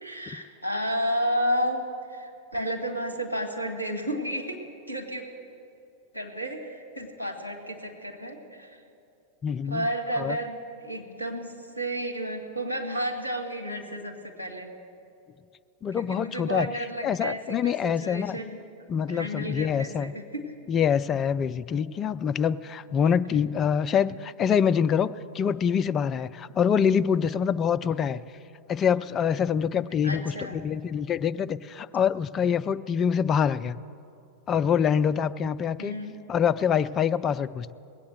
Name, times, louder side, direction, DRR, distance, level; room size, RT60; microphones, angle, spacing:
voice 1, 0.0-4.6 4.9-5.2 6.1-8.8 9.7-14.7 15.9-18.6 19.1-20.5 30.0-30.6 35.8-36.2, equal, 85° right, 5 dB, 1.7 m, -32 dB
voice 2, 9.4-9.8 10.2-10.4 15.8-16.7 17.0-18.4 18.9-20.1 20.7-28.2 28.7-33.8 34.5-35.9 36.3-37.7, left 7 dB, 25° left, 12 dB, 0.4 m, -25 dB
19.5 x 8.5 x 7.7 m, 2.6 s
figure-of-eight pair, 90°, 0 cm